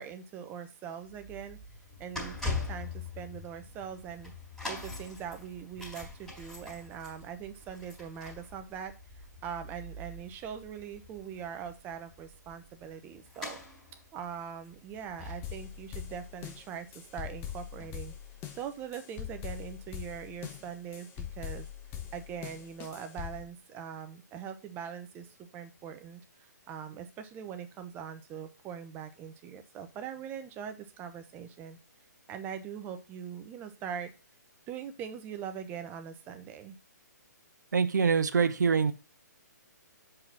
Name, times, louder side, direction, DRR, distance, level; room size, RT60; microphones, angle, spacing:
voice 1, 0.0-1.6 2.0-2.9 3.2-4.3 4.7-8.9 9.4-13.6 14.1-16.9 17.1-18.1 18.6-21.7 22.1-31.8 32.3-34.1 34.7-36.8, right 8 dB, 20° right, 0.8 m, -42 dB
sound 1, 1.1-17.4 17.7-17.9 18.7-18.8, left 3 dB, 5° left, 4.6 m, -43 dB
sound 2, 15.4-23.4, left 10 dB, 20° left, 1.1 m, -42 dB
voice 2, 37.7-38.9, right 5 dB, 75° right, 0.8 m, -25 dB
6.0 x 4.9 x 5.9 m
hypercardioid pair, 145°, 10 cm